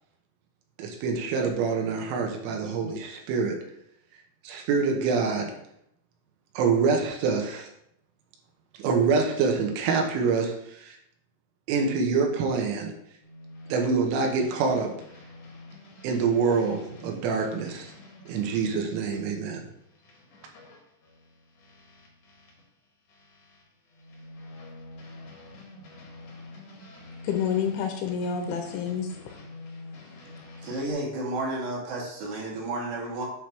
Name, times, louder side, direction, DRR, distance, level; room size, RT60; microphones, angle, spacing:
voice 1, 0.8-3.6 4.4-5.5 6.6-7.7 8.8-11.0 11.7-12.9 13.7-15.0 16.0-17.9 18.3-19.6, right 5 dB, 80° right, 2 dB, 3.5 m, -26 dB
sound 1, 13.2-22.7 23.1-30.9, left 2 dB, 65° left, 1.6 m, -47 dB
voice 2, 27.2-29.3, left 7 dB, 80° left, 4 dB, 3.1 m, -29 dB
voice 3, 30.6-33.3, right 2 dB, 65° right, -4 dB, 3.7 m, -32 dB
8.7 x 3.2 x 5.9 m, 0.75 s
omnidirectional pair, 5.7 m